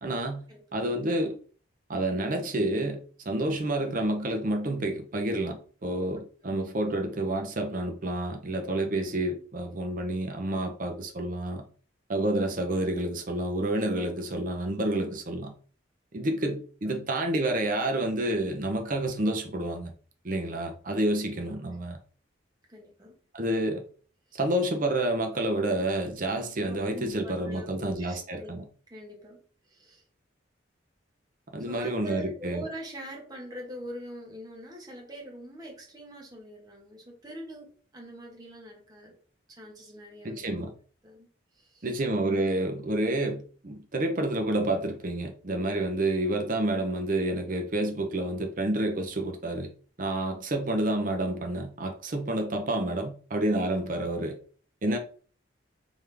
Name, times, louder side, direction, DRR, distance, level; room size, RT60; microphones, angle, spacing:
voice 1, 0.0-0.4 0.7-1.4 1.9-3.0 3.3-11.6 12.1-15.5 16.1-19.9 20.2-22.0 23.3-23.8 24.3-28.6 31.5-32.6 40.2-40.7 41.8-49.7 50.0-54.4 54.8-55.0, right 1 dB, 45° right, 0.6 m, -29 dB
voice 2, 22.7-23.1 24.3-24.4 26.7-28.5 28.9-30.0 31.6-39.2 39.5-40.5 41.0-41.3 41.5-41.9 54.8-55.0, right 1 dB, 20° right, 1.2 m, -43 dB
3.6 x 3.4 x 3.3 m
head